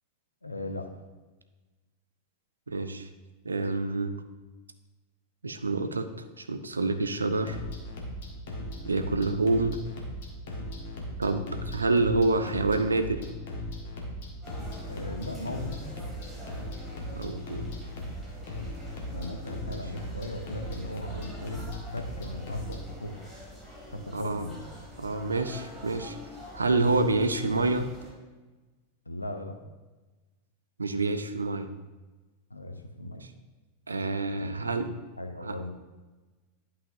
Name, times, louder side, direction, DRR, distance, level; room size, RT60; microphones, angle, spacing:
voice 1, 0.4-0.9 14.9-15.8 19.1-21.7 21.9-23.2 23.9-24.7 26.8-27.1 29.1-29.6 32.5-33.2 34.3-34.8 35.2-35.7, left 1 dB, 80° left, 5 dB, 0.7 m, -38 dB
voice 2, 2.7-3.1 3.4-4.1 5.4-6.1 6.4-7.6 8.8-9.8 11.2-13.2 17.1-17.7 19.7-19.8 24.1-24.4 25.0-26.2 26.5-27.9 30.8-31.7 33.9-34.9 35.4-35.6, right 3 dB, 75° right, 8 dB, 0.5 m, -27 dB
sound 1, 7.3-22.8, left 1 dB, 55° left, 1.5 m, -38 dB
sound 2, 14.4-28.1, left 1 dB, 10° right, 2.4 m, -46 dB
11.0 x 5.7 x 2.6 m, 1.2 s
figure-of-eight pair, 90°, 0 cm